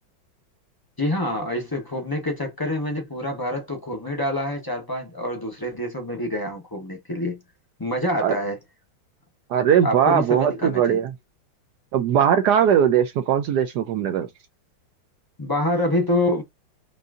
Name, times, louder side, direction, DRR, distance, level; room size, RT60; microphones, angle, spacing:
voice 1, 1.0-7.4 7.8-8.6 9.8-11.0 15.4-16.4, left 1 dB, 25° left, 0.5 m, -26 dB
voice 2, 9.5-11.1 11.9-14.3, right 9 dB, 75° right, 0.9 m, -20 dB
5.3 x 2.5 x 2.4 m
omnidirectional pair, 2.2 m